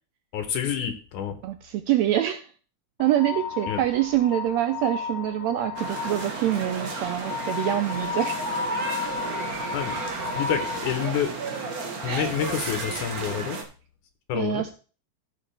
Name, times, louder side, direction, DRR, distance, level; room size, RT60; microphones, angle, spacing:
voice 1, 0.3-1.4 3.7-3.8 9.7-10.0 10.3-11.3 12.0-13.6 14.3-14.6, left 8 dB, 75° left, 7 dB, 2.4 m, -28 dB
voice 2, 1.4-2.5 3.0-8.4 12.1-12.3 14.3-14.7, right 12 dB, 85° right, 9 dB, 1.5 m, -25 dB
sound 1, 3.0-11.0, left 6 dB, 50° left, 1.2 m, -33 dB
sound 2, 5.8-13.6, right 4 dB, 50° right, 1.0 m, -33 dB
14.0 x 6.0 x 3.4 m, 0.37 s
omnidirectional pair, 3.7 m